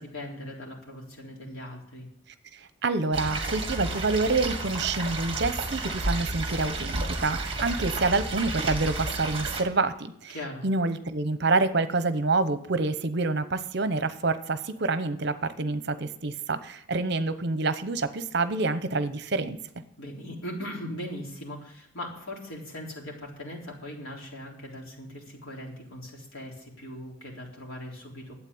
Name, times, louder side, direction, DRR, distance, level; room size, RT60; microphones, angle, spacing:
voice 1, 0.0-2.1 10.3-10.6 20.0-28.3, left 1 dB, 90° left, -1 dB, 3.8 m, -39 dB
voice 2, 2.5-10.3 10.6-19.6, right 3 dB, 55° right, 12 dB, 0.9 m, -27 dB
sound 1, 3.1-9.6, right 2 dB, 25° right, 1.8 m, -31 dB
12.0 x 8.4 x 8.6 m, 0.70 s
head